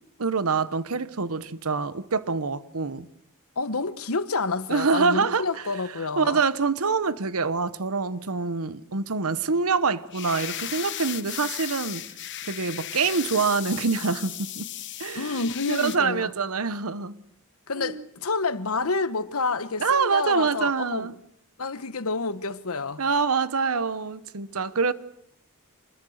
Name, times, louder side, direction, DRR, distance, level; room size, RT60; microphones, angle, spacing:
voice 1, 0.2-3.1 4.7-5.5 6.2-12.0 12.5-14.7 15.0-15.4 15.7-17.2 17.8-18.0 19.8-21.1 23.0-24.9, right 4 dB, 80° right, 1.0 m, -25 dB
voice 2, 3.6-6.4 15.1-16.3 17.7-21.1 21.6-23.0, left 3 dB, 80° left, 1.2 m, -28 dB
sound 1, 10.1-16.0, left 13 dB, 55° left, 1.1 m, -36 dB
26.5 x 21.5 x 6.5 m
head